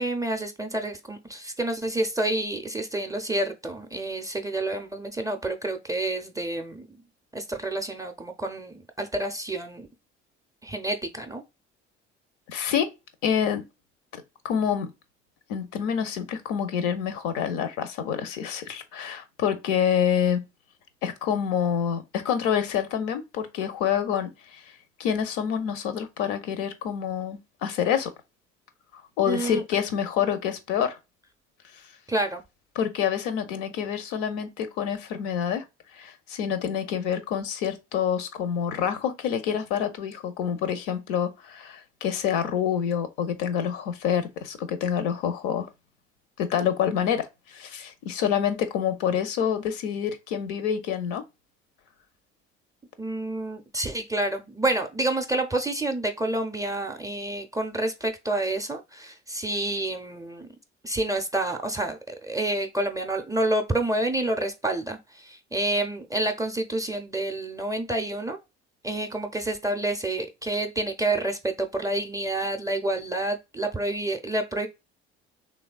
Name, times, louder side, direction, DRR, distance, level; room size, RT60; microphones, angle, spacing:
voice 1, 0.0-7.0 7.3-9.9 10.6-11.4 29.2-29.6 32.1-32.4 53.0-60.5 60.8-68.4 68.8-74.7, right 2 dB, 10° right, 0.4 m, -28 dB
voice 2, 12.5-12.9 13.2-13.6 14.1-14.9 15.5-20.4 21.0-24.6 25.0-28.1 29.2-31.0 32.8-35.6 35.9-45.7 46.4-51.2, left 8 dB, 65° left, 0.6 m, -27 dB
3.1 x 2.3 x 2.3 m
hypercardioid pair, 55°, 34 cm